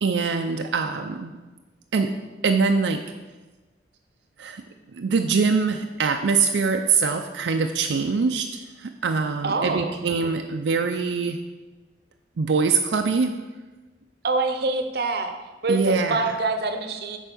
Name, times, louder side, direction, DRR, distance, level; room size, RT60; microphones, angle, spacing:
voice 1, 0.0-1.3 1.9-2.1 2.4-3.0 4.4-4.6 4.9-11.4 12.4-13.3 15.7-16.2, right 4 dB, 85° right, 4 dB, 0.5 m, -23 dB
voice 2, 9.4-10.1 14.2-15.3 15.6-17.2, right 3 dB, 60° right, 6 dB, 0.7 m, -25 dB
8.0 x 4.4 x 6.0 m, 1.2 s
head